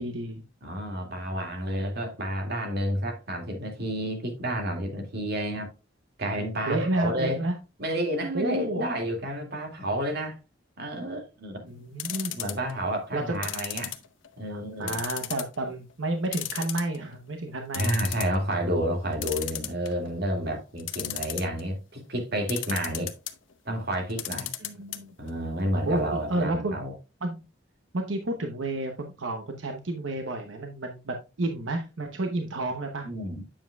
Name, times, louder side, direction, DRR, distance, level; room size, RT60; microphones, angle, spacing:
voice 1, 0.0-0.4 6.3-7.5 8.3-8.9 11.6-12.4 13.1-13.5 14.5-17.9 24.6-25.1 25.9-26.8 27.2-27.4 27.9-33.1, right 2 dB, 85° right, 0.9 m, -31 dB
voice 2, 0.6-5.7 6.2-7.4 7.8-10.4 10.8-11.7 12.4-13.9 14.4-15.0 17.7-23.1 23.7-24.5 25.2-26.9 33.0-33.5, right 1 dB, 60° right, 2.2 m, -30 dB
sound 1, 12.0-12.7 13.4-14.4 14.9-15.5 15.9-16.0 16.3-17.1 17.5-17.6 17.7-18.4 19.2-20.1 20.8-21.6 22.5-23.3 24.1-25.0 25.3-25.4 25.6-25.7, left 14 dB, 90° left, 0.8 m, -33 dB
8.7 x 7.2 x 2.3 m
head